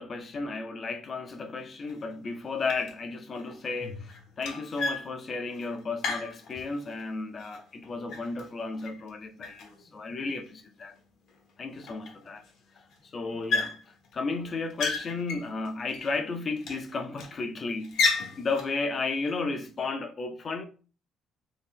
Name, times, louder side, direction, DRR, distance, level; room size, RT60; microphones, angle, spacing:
voice 1, 0.0-11.0 11.6-12.4 13.0-13.8 14.1-20.7, left 3 dB, 35° left, 0.5 m, -34 dB
sound 1, 1.3-1.4 1.9-2.3 2.6-3.1 3.4-7.0 7.4-9.1 9.4-10.4 11.0-11.1 11.3-11.4 11.8-12.5 12.8-13.0 13.5-14.1 14.5-16.2 16.6-17.4 17.8-18.7, left 4 dB, 65° left, 0.8 m, -33 dB
2.9 x 2.7 x 3.6 m
cardioid pair, 145°, 0 cm